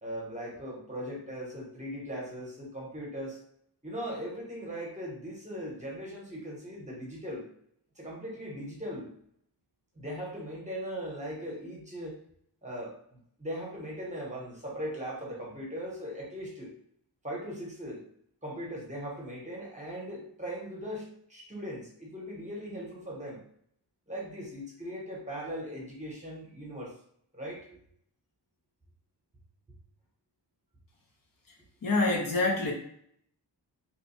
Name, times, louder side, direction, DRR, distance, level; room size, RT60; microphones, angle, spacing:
voice 1, 0.0-3.4 3.8-7.5 8.0-9.1 10.0-12.2 12.6-12.9 13.4-16.7 17.2-18.1 18.4-23.4 24.1-26.9 27.3-27.8, equal, 15° right, -3 dB, 0.9 m, -39 dB
voice 2, 31.8-32.7, left 2 dB, 50° left, 0 dB, 0.7 m, -26 dB
3.0 x 2.2 x 4.2 m, 0.68 s
wide cardioid pair, 175°, 42 cm